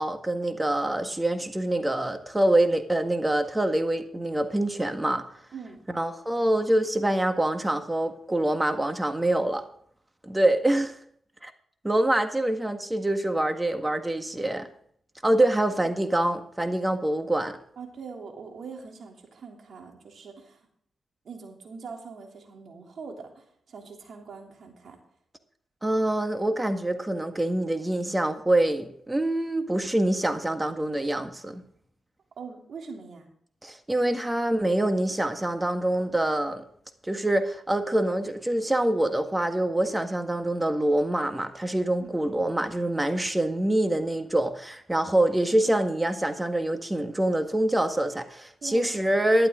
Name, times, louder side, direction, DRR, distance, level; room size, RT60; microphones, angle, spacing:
voice 1, 0.0-5.2 6.0-9.6 10.2-11.0 11.4-11.5 11.8-14.7 15.2-17.6 25.8-31.6 33.6-36.6 37.0-49.5, right 1 dB, 15° right, 1.6 m, -25 dB
voice 2, 17.8-20.7 21.2-25.0 32.4-33.3 42.0-42.1 48.6-48.9, right 5 dB, 65° right, 3.1 m, -42 dB
13.0 x 11.0 x 3.8 m
cardioid pair, 55°, 0 cm